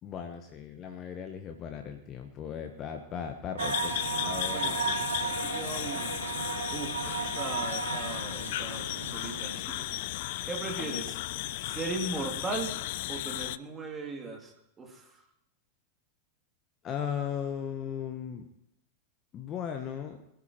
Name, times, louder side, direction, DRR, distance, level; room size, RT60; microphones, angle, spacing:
voice 1, 0.0-4.0 4.2-5.1 16.8-18.4 19.3-20.2, left 8 dB, 30° left, 6 dB, 1.1 m, -37 dB
sound 1, 3.6-13.6, left 16 dB, 50° left, 0.4 m, -35 dB
sound 2, 3.6-9.6, right 5 dB, 75° right, 1.2 m, -34 dB
voice 2, 4.4-6.2 6.7-8.9 9.1-10.0 10.5-11.2 11.6-12.8 13.1-15.2, right 3 dB, 20° right, 1 dB, 2.7 m, -38 dB
21.5 x 13.0 x 3.1 m, 0.83 s
figure-of-eight pair, 90°, 0 cm